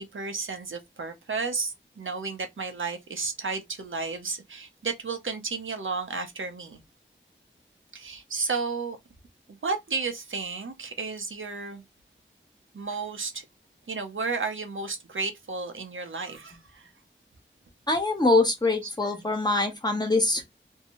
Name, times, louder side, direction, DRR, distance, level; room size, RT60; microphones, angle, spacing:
voice 1, 0.0-6.8 7.9-9.0 9.5-11.8 12.7-13.4 13.9-16.9 18.8-18.9, right 4 dB, 85° right, 0.6 m, -33 dB
voice 2, 17.9-20.6, left 2 dB, 20° left, 0.8 m, -24 dB
2.7 x 2.2 x 2.8 m
wide cardioid pair, 45°, 20 cm